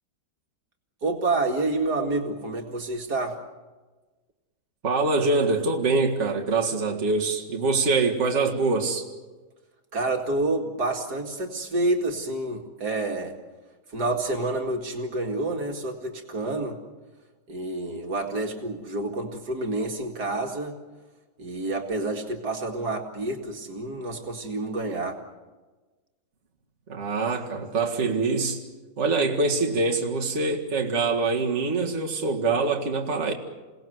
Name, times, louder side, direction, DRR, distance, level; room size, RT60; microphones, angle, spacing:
voice 1, 1.0-3.4 9.9-13.3 13.9-16.8 17.5-20.8 21.4-25.2, right 2 dB, 70° right, 3 dB, 2.6 m, -28 dB
voice 2, 4.8-9.1 26.9-28.6 29.0-33.3, right 3 dB, 45° right, 0 dB, 2.2 m, -24 dB
28.5 x 18.0 x 7.9 m, 1.3 s
omnidirectional pair, 1.7 m